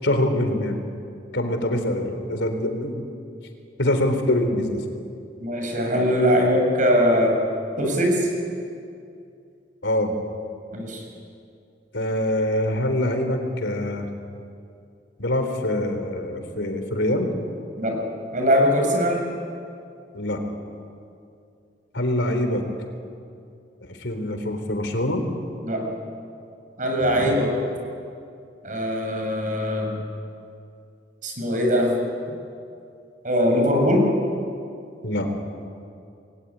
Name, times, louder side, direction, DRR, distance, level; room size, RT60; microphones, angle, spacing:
voice 1, 0.0-0.8 1.3-3.0 3.8-4.8 9.8-10.1 11.9-14.1 15.2-17.3 20.1-20.4 21.9-22.6 23.8-25.2 27.0-27.3 35.0-35.3, left 1 dB, 90° left, 6 dB, 3.7 m, -24 dB
voice 2, 5.4-7.4 7.8-8.3 10.7-11.0 17.8-18.0 18.3-19.2 25.6-25.9 26.8-27.5 28.6-30.0 31.2-31.9 33.2-34.1, equal, 45° right, 1 dB, 7.2 m, -21 dB
27.5 x 22.0 x 9.9 m, 2.5 s
head